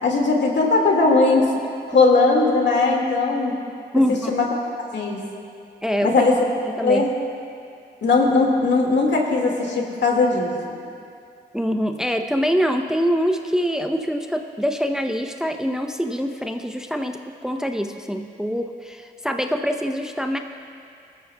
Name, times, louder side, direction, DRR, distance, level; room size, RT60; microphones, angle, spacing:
voice 1, 0.0-1.5 1.9-3.6 4.3-4.5 4.9-5.2 6.0-6.4 6.8-7.1 8.0-10.5, left 3 dB, 70° left, 0 dB, 2.0 m, -18 dB
voice 2, 3.9-4.3 5.8-6.2 6.6-7.0 11.5-20.4, equal, 5° right, 5 dB, 0.7 m, -24 dB
18.0 x 13.5 x 2.3 m, 2.4 s
supercardioid pair, 50°, 19 cm